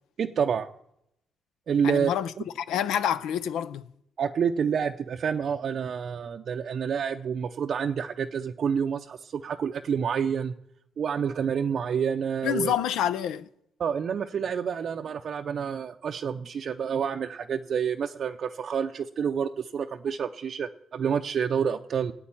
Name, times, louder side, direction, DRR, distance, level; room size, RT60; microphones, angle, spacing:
voice 1, 0.2-0.7 1.7-2.1 4.2-10.5 11.0-12.7 13.8-22.1, right 7 dB, 55° right, 0.5 m, -28 dB
voice 2, 1.8-2.3 2.6-3.9 12.4-13.5, left 10 dB, 85° left, 0.5 m, -27 dB
11.5 x 8.6 x 8.7 m
cardioid pair, 90°, 0 cm